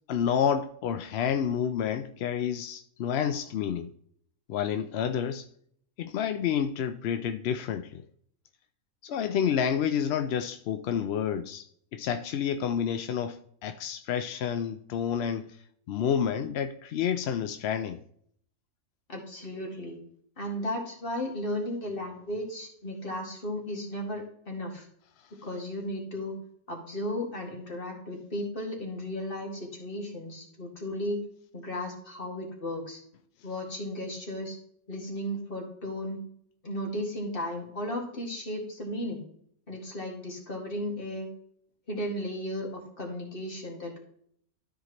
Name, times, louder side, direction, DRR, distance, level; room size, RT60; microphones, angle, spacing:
voice 1, 0.1-3.9 4.5-5.5 6.0-8.0 9.0-11.7 11.9-15.6 15.9-18.0, left 8 dB, 65° left, 0.6 m, -29 dB
voice 2, 19.1-20.0 20.4-24.9 25.4-26.3 26.7-31.2 31.5-33.0 33.4-34.6 34.9-36.2 36.6-39.2 39.7-41.3 41.9-44.0, left 1 dB, 40° left, 2.2 m, -35 dB
13.0 x 5.0 x 3.0 m
omnidirectional pair, 1.5 m